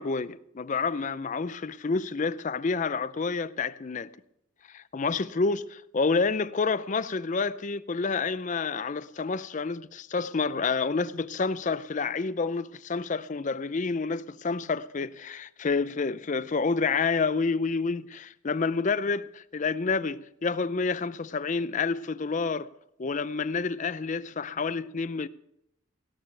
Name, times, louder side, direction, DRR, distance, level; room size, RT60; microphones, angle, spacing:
voice 1, 0.0-4.1 4.7-22.7 23.0-25.3, left 4 dB, 35° left, 0.5 m, -29 dB
18.0 x 17.0 x 3.3 m
head